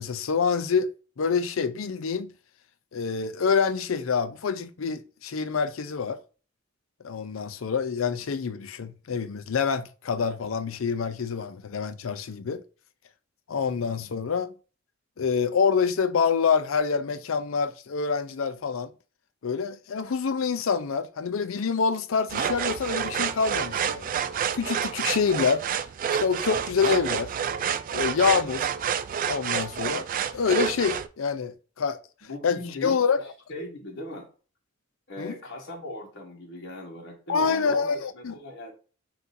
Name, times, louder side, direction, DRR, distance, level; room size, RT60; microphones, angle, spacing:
voice 1, 0.0-2.3 2.9-6.2 7.0-12.6 13.5-14.5 15.2-18.9 19.4-24.1 24.5-25.6 26.2-27.3 27.9-28.7 29.3-30.1 30.3-32.0 32.4-33.2 35.2-35.3 37.3-38.4, left 5 dB, 85° left, 0.5 m, -26 dB
sound 1, 22.3-31.1, right 8 dB, 45° right, 0.3 m, -29 dB
voice 2, 32.2-33.1 33.5-34.3 35.1-38.7, left 1 dB, 60° left, 1.3 m, -38 dB
5.8 x 2.6 x 2.6 m
head